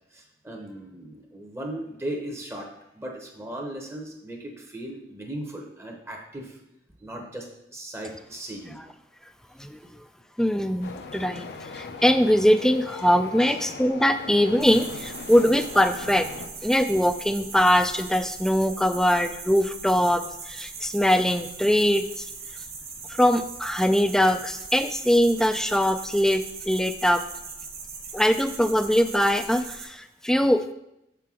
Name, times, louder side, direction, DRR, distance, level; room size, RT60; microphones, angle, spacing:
voice 1, 0.1-6.6 7.0-8.8 13.4-13.6, right 1 dB, 15° right, 1 dB, 0.8 m, -37 dB
voice 2, 10.4-11.5 11.7-16.3 16.6-22.3 23.2-27.2 28.1-30.7, equal, 5° left, 9 dB, 0.3 m, -22 dB
sound 1, 10.8-16.5, left 4 dB, 65° left, 0.5 m, -39 dB
sound 2, 14.6-29.8, right 4 dB, 35° right, 1.2 m, -40 dB
6.5 x 5.9 x 3.7 m, 0.83 s
head